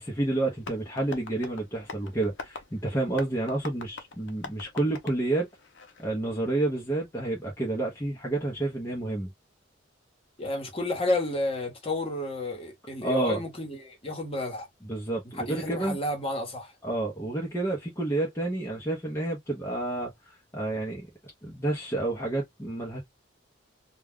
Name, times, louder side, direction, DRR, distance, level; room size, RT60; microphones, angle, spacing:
voice 1, 0.0-5.5 6.0-9.3 13.0-13.4 14.9-16.0 16.8-21.1 21.4-23.0, right 2 dB, 15° left, 0.7 m, -29 dB
Tap, 0.6-6.1, left 4 dB, 70° left, 0.6 m, -44 dB
voice 2, 10.4-14.7 15.3-16.7, left 2 dB, 30° left, 1.1 m, -31 dB
2.3 x 2.2 x 3.5 m
head